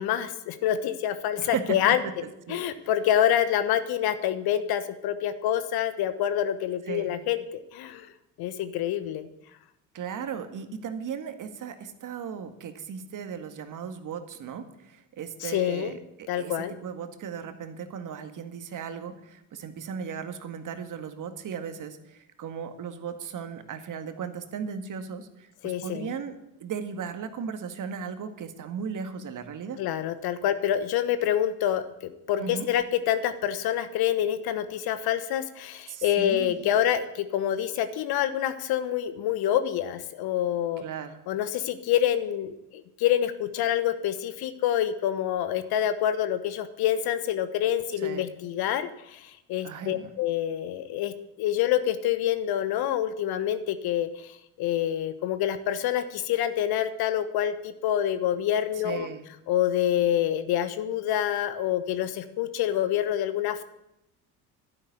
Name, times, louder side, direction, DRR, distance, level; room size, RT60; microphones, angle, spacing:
voice 1, 0.0-2.0 2.5-8.1 8.4-9.3 15.4-16.0 16.3-16.7 25.6-26.1 29.8-31.8 32.3-40.8 41.3-54.1 54.6-59.1 59.5-63.6, left 11 dB, 55° left, 12 dB, 1.2 m, -27 dB
voice 2, 1.4-2.1 2.5-2.6 6.9-7.1 9.9-29.8 32.4-32.7 35.9-36.6 40.8-41.2 48.0-48.3 49.6-50.1 58.8-59.2, right 7 dB, 45° right, 8 dB, 1.8 m, -36 dB
12.0 x 10.5 x 8.1 m, 0.86 s
hypercardioid pair, 60°, 45 cm